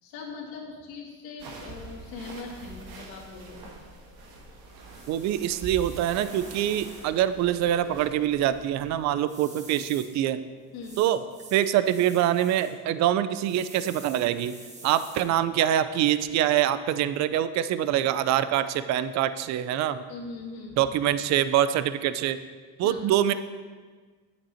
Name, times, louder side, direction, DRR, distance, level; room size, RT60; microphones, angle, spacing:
voice 1, 0.0-3.8 10.7-11.0 20.1-20.8 22.8-23.0, left 4 dB, 70° left, -2 dB, 2.4 m, -40 dB
sound 1, 1.4-9.0, right 3 dB, 65° right, 1.5 m, -44 dB
sound 2, 3.6-16.6, right 2 dB, 20° right, 1.6 m, -50 dB
voice 2, 5.1-10.4 11.0-11.2 11.5-14.5 14.8-20.0 20.8-22.4 22.8-23.3, right 11 dB, 50° right, 13 dB, 0.5 m, -25 dB
9.0 x 7.5 x 4.3 m, 1.5 s
cardioid pair, 130°, 37 cm